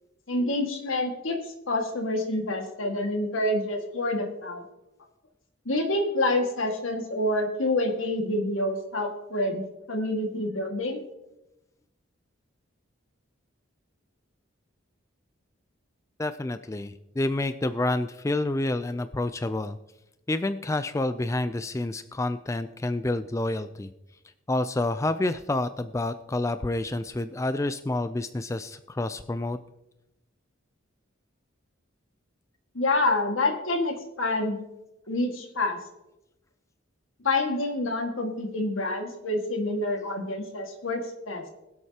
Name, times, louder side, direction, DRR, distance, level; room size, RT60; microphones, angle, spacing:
voice 1, 0.3-4.6 5.7-9.6 9.9-11.0 32.7-34.6 35.1-35.8 37.2-41.4, left 2 dB, 80° left, 3 dB, 1.9 m, -27 dB
voice 2, 16.2-19.8 20.3-23.9 24.5-29.6, left 2 dB, 15° left, 11 dB, 0.3 m, -28 dB
22.5 x 8.0 x 2.9 m, 0.94 s
head